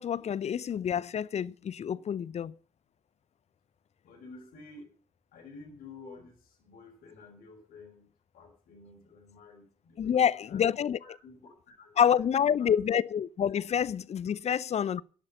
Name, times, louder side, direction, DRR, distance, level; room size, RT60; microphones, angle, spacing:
voice 1, 0.0-2.5 10.0-11.0 12.0-15.0, left 8 dB, 45° left, 0.6 m, -27 dB
voice 2, 4.0-4.9 5.3-8.1 8.3-10.6 11.0-12.7, left 3 dB, 65° left, 5.0 m, -51 dB
11.5 x 11.0 x 6.9 m
hypercardioid pair, 45°, 16 cm